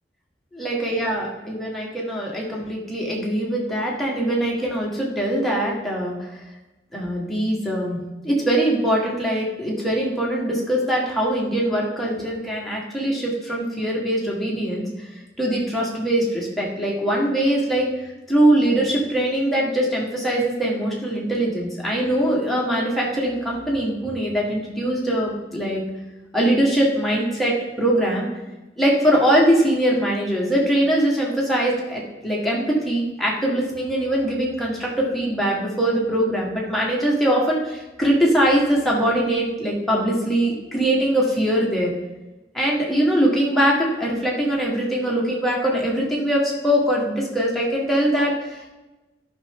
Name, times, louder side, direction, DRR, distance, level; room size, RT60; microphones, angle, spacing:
voice 1, 0.5-6.3 6.9-8.0 8.2-15.1 15.4-17.9 18.3-25.8 26.3-28.3 28.8-41.9 42.5-48.7, right 1 dB, ahead, -4 dB, 1.7 m, -22 dB
12.5 x 5.9 x 3.7 m, 1.1 s
head